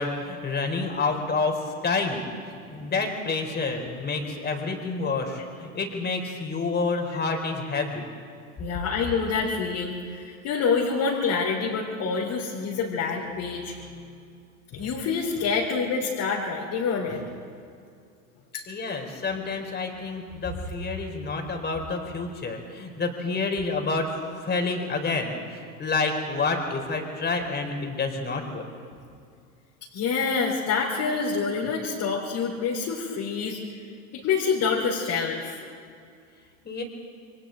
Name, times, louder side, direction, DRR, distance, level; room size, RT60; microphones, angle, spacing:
voice 1, 0.0-1.6 1.8-2.3 2.7-8.1 13.8-14.3 18.7-24.1 24.4-25.4 25.8-28.7 36.6-36.8, left 3 dB, 25° left, 3 dB, 3.8 m, -28 dB
voice 2, 8.6-13.7 14.7-17.2 18.5-18.6 29.9-33.6 34.1-35.6, left 5 dB, 45° left, -4 dB, 3.9 m, -27 dB
29.0 x 23.0 x 3.9 m, 2.3 s
hypercardioid pair, 105°, 43 cm